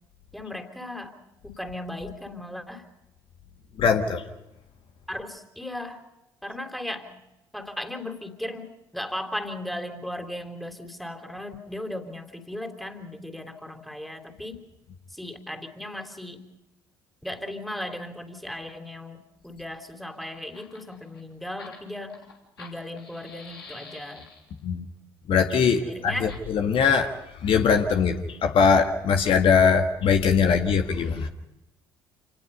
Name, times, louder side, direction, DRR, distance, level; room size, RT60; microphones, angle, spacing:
voice 1, 0.3-1.1 1.4-2.8 5.1-6.0 6.4-7.2 7.5-14.6 15.1-16.4 17.2-22.2 22.6-24.3 25.6-26.3, left 1 dB, ahead, 6 dB, 3.3 m, -36 dB
voice 2, 3.8-4.2 24.6-24.9 25.3-27.1 27.4-31.3, left 6 dB, 45° left, 5 dB, 1.7 m, -21 dB
Fire, 20.0-24.6 26.2-26.4, left 3 dB, 85° left, 3.4 m, -46 dB
28.0 x 19.5 x 5.6 m, 0.95 s
figure-of-eight pair, 55°, 12 cm